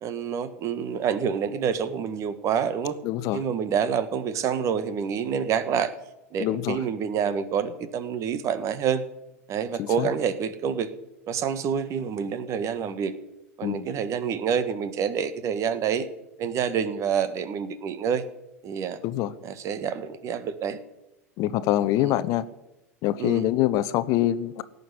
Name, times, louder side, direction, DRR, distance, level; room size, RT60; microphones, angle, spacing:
voice 1, 0.0-3.0 3.3-5.9 6.3-9.0 9.5-10.9 11.3-13.1 13.6-16.1 16.4-18.2 18.6-19.0 19.4-20.8 22.0-22.1 23.2-23.4, right 7 dB, 40° right, 14 dB, 1.5 m, -27 dB
voice 2, 3.0-3.4 6.4-6.8 9.8-10.1 13.6-13.9 19.0-19.3 21.4-22.5 23.0-24.6, left 14 dB, 45° left, 14 dB, 0.9 m, -25 dB
17.5 x 6.9 x 9.9 m, 0.92 s
figure-of-eight pair, 80°, 8 cm